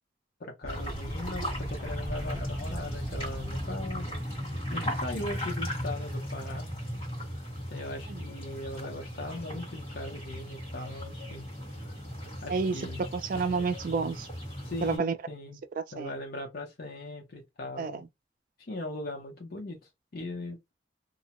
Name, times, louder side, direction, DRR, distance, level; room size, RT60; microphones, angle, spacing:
voice 1, 0.4-4.1 4.7-6.7 7.7-11.5 12.4-13.1 14.6-15.6 15.9-18.0 18.6-19.8 20.1-20.7, left 1 dB, 60° left, 0.6 m, -39 dB
Fowl, 0.6-5.9, right 1 dB, 20° right, 0.8 m, -41 dB
sound 1, 0.7-15.0, equal, 35° left, 1.6 m, -37 dB
voice 2, 13.1-14.3 14.8-15.2 15.8-16.2 17.8-18.0, right 4 dB, 50° right, 0.3 m, -30 dB
2.6 x 2.1 x 2.9 m
head